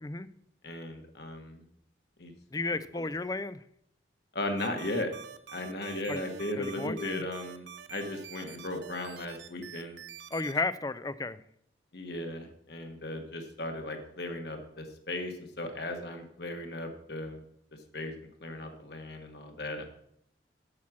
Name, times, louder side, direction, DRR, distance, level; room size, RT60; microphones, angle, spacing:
voice 1, 0.6-1.6 2.2-2.3 2.9-3.0 4.3-5.1 5.5-10.0 11.9-17.4 17.9-18.1 18.4-19.9, left 1 dB, 55° left, 4 dB, 1.4 m, -36 dB
voice 2, 2.5-3.6 6.1-6.2 6.6-7.2 10.3-11.4, left 3 dB, 20° left, 15 dB, 0.4 m, -33 dB
sound 1, 4.6-10.6, right 8 dB, 70° right, 0.8 m, -46 dB
8.6 x 7.2 x 6.3 m, 0.70 s
head